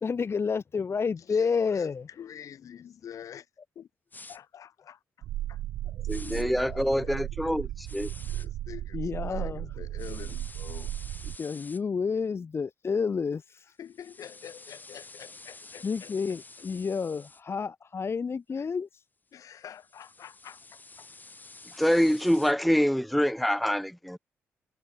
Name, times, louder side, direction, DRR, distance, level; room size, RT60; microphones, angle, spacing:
voice 1, 0.0-2.1 6.0-7.0 8.9-9.7 11.4-13.7 15.8-19.0, left 5 dB, 45° left, 1.0 m, -30 dB
voice 2, 1.3-3.5 3.7-3.9 4.3-5.6 7.0-7.2 8.3-9.0 9.3-10.9 13.8-16.4 18.5-18.7 19.3-21.1, left 9 dB, 65° left, 2.8 m, -46 dB
sound 1, 4.1-4.4 6.1-6.4 7.8-8.5 10.0-11.8 13.8-17.4 19.5-22.5, left 3 dB, 30° left, 6.4 m, -49 dB
sound 2, 5.2-11.4, right 13 dB, 80° right, 0.9 m, -35 dB
voice 3, 6.1-8.1 21.8-24.2, equal, ahead, 0.4 m, -25 dB
hypercardioid pair, 45°, 6 cm